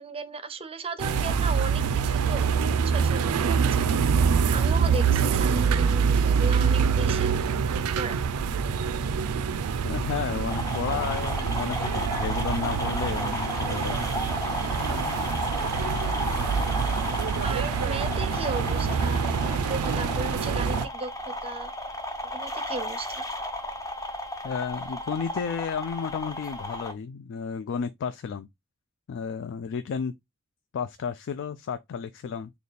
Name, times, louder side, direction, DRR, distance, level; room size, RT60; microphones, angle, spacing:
voice 1, 0.0-2.5 2.8-4.0 4.5-7.3 7.6-8.2 17.4-21.7 22.3-23.2, right 4 dB, 25° right, 0.5 m, -36 dB
sound 1, 1.0-20.9, right 6 dB, 75° right, 0.4 m, -25 dB
voice 2, 9.8-14.4 14.9-15.2 24.4-28.5 29.1-30.1 30.7-32.5, left 6 dB, 55° left, 0.3 m, -32 dB
sound 2, 10.5-26.9, left 1 dB, 15° left, 0.6 m, -34 dB
4.0 x 2.3 x 3.3 m
head